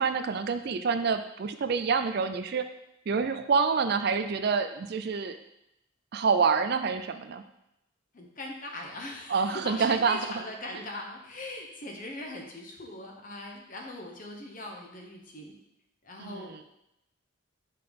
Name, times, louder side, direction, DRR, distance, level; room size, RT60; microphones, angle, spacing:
voice 1, 0.0-2.7 3.1-5.4 6.1-7.4 9.3-10.2 16.2-16.6, right 5 dB, 50° right, 9 dB, 0.4 m, -27 dB
voice 2, 8.1-15.5 16.0-16.6, left 1 dB, 40° left, 1 dB, 1.0 m, -40 dB
5.6 x 3.8 x 5.2 m, 0.86 s
head